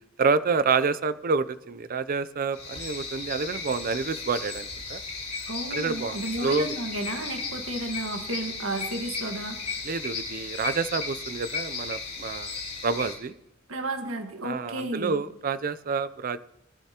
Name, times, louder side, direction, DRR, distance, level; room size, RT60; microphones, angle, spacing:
voice 1, 0.2-5.0 5.7-6.7 9.8-12.6 12.8-13.3 14.4-16.4, right 4 dB, 45° right, 14 dB, 0.5 m, -28 dB
sound 1, 2.5-13.1, left 4 dB, 35° left, 3.5 m, -35 dB
voice 2, 5.5-9.6 13.7-15.1, right 2 dB, 80° right, 5 dB, 1.5 m, -33 dB
20.5 x 11.5 x 2.9 m, 0.87 s
head